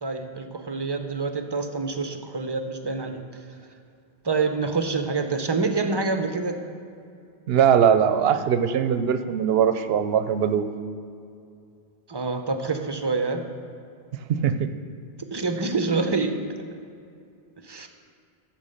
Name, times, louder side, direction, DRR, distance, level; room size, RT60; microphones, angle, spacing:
voice 1, 0.0-3.3 4.2-6.6 12.1-13.5 15.3-16.4 17.6-17.9, right 4 dB, 30° right, 6 dB, 0.6 m, -26 dB
voice 2, 7.5-10.6 14.4-14.7, right 8 dB, 75° right, 10 dB, 0.8 m, -21 dB
13.0 x 4.5 x 6.4 m, 2.5 s
omnidirectional pair, 1.0 m